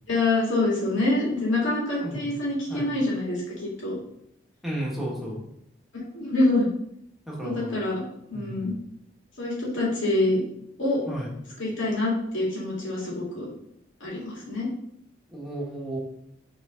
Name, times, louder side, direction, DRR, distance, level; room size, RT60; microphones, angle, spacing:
voice 1, 0.1-4.0 5.9-6.7 7.4-8.0 8.3-8.7 9.4-10.4 10.8-11.0 11.6-13.5 14.0-14.7, left 2 dB, 70° left, -5 dB, 2.3 m, -26 dB
voice 2, 2.0-2.3 2.7-2.9 4.6-5.4 7.3-7.8 8.3-8.7 11.1-11.3 15.3-16.0, right 1 dB, ahead, -5 dB, 1.4 m, -33 dB
6.1 x 3.3 x 5.1 m, 0.73 s
head